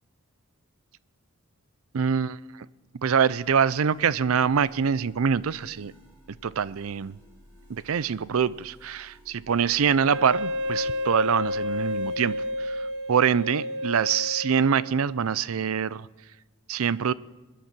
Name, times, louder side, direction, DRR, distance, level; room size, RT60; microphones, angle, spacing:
voice 1, 1.9-2.7 3.0-5.9 6.4-7.2 7.7-16.1 16.7-17.1, right 7 dB, 80° right, 19 dB, 0.5 m, -25 dB
sound 1, 3.4-12.5, equal, 30° right, 7.5 m, -53 dB
Wind instrument woodwind instrument, 10.1-15.2, left 1 dB, 55° right, 1.0 m, -31 dB
22.5 x 10.0 x 6.0 m, 1.2 s
head